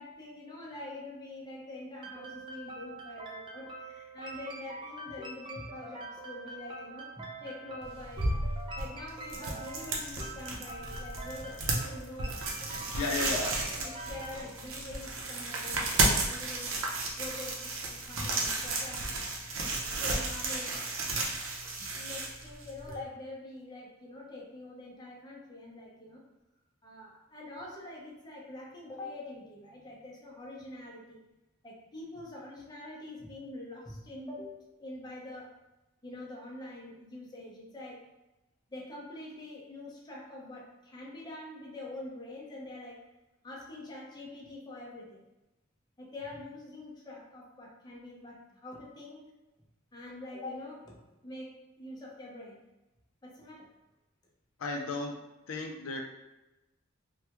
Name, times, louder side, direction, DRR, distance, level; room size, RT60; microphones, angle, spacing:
voice 1, 0.0-8.5 8.8-12.8 13.1-13.3 13.7-16.8 17.2-19.4 19.9-20.8 21.8-26.2 26.8-31.2 31.6-35.5 36.0-38.0 38.7-43.1 43.4-45.2 46.0-49.2 49.9-52.6 53.2-53.7, left 2 dB, 20° left, -3 dB, 0.6 m, -45 dB
sound 1, 2.0-14.3, right 2 dB, 25° right, 0.3 m, -45 dB
sound 2, 7.8-23.0, right 2 dB, 70° right, 0.6 m, -33 dB
voice 2, 13.0-13.5 54.6-55.1 55.5-56.0, left 3 dB, 75° left, 2 dB, 0.4 m, -33 dB
3.3 x 2.2 x 2.9 m, 0.99 s
head